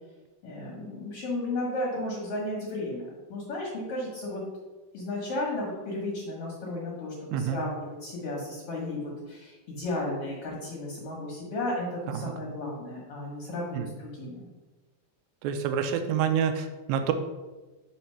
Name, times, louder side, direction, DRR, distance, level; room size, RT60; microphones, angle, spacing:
voice 1, 0.4-4.4 4.9-9.0 9.3-14.5, left 2 dB, 70° left, -3 dB, 1.4 m, -34 dB
voice 2, 7.3-7.6 12.1-12.3 13.7-13.9 15.4-17.1, right 8 dB, 85° right, 7 dB, 2.4 m, -28 dB
5.7 x 3.2 x 5.5 m, 1.2 s
omnidirectional pair, 4.1 m